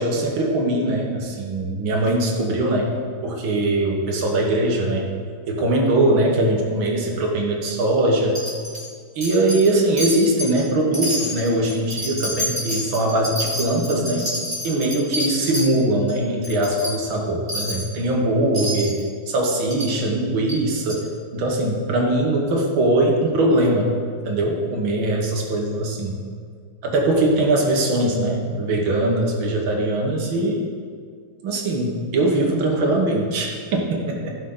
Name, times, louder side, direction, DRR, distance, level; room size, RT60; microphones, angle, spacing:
voice 1, 0.0-2.9 3.2-5.1 5.5-8.4 9.2-14.3 14.6-19.0 19.3-21.1 21.3-23.9 24.3-26.1 26.8-30.7 31.4-34.4, right 1 dB, 70° right, 0 dB, 2.1 m, -21 dB
Wind chime, 8.3-8.9 9.2-9.7 10.0-10.6 10.9-15.7 16.1-16.2 16.4-16.9 17.5-17.9 18.5-19.0 19.7-19.9 20.5-20.6 20.9-21.0, left 1 dB, 20° right, 2.7 m, -28 dB
15.5 x 6.4 x 3.8 m, 2.1 s
omnidirectional pair, 2.3 m